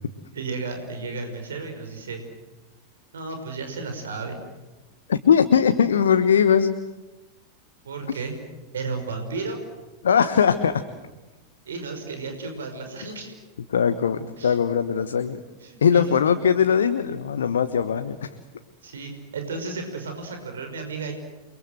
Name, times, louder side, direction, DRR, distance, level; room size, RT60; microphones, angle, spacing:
voice 1, 0.3-2.2 3.1-4.4 7.8-8.4 8.7-9.6 11.7-13.4 14.4-14.6 15.6-16.3 18.8-21.1, right 4 dB, 65° right, 5 dB, 5.5 m, -33 dB
voice 2, 5.1-6.7 10.0-10.8 13.7-15.4 15.8-18.3, left 7 dB, 65° left, 9 dB, 1.3 m, -20 dB
29.5 x 23.5 x 7.9 m, 1.1 s
figure-of-eight pair, 90°, 0 cm